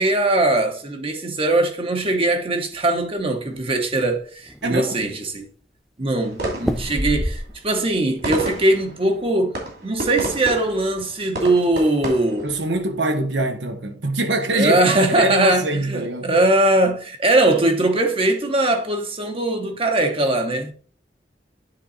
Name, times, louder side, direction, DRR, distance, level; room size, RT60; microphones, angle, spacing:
voice 1, 0.0-5.5 6.0-9.5 9.8-12.5 14.5-20.7, right 2 dB, 30° right, 1.0 m, -20 dB
sound 1, 2.7-3.6 4.1-4.2 4.5-5.1 6.6-7.8 8.2-8.7, equal, ahead, 0.6 m, -27 dB
voice 2, 4.6-5.0 12.4-16.3, right 1 dB, 85° right, 1.2 m, -24 dB
sound 2, 6.2-13.0, right 1 dB, 65° right, 2.6 m, -32 dB
9.8 x 3.8 x 4.0 m
head